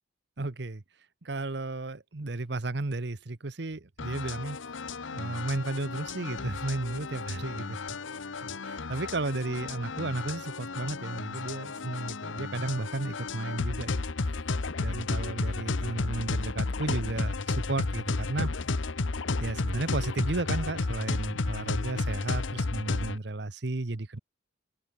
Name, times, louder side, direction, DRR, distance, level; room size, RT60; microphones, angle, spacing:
voice 1, 0.4-0.8 1.2-4.6 5.1-7.8 8.4-14.0 14.8-18.5 19.4-24.2, right 2 dB, 60° right, 1.0 m, -33 dB
sound 1, 4.0-23.2, left 3 dB, 80° left, 1.0 m, -33 dB
head